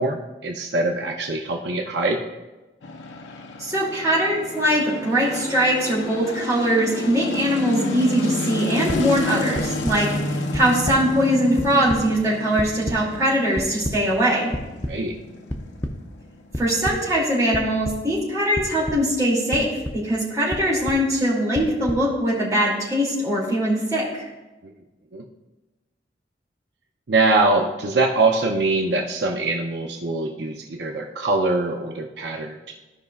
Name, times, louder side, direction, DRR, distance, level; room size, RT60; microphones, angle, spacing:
voice 1, 0.0-2.2 14.9-15.1 24.6-24.7 25.1-25.2 27.1-32.7, right 2 dB, 70° right, 2 dB, 0.7 m, -23 dB
sound 1, 2.8-17.1, left 2 dB, 90° left, 0.7 m, -31 dB
voice 2, 3.6-14.5 16.6-19.7 19.9-24.3, equal, 20° right, -6 dB, 2.4 m, -21 dB
sound 2, 8.9-9.0 9.5-10.0 10.5-11.0 11.3-12.0 12.6-13.0 13.5-14.0 14.5-14.9 15.5-15.9 16.5-16.9 17.5-17.9 18.5-19.0 19.5-19.9 20.5-21.0 21.5-22.0, equal, 15° left, 0.6 m, -29 dB
14.5 x 5.4 x 2.4 m, 1.1 s
head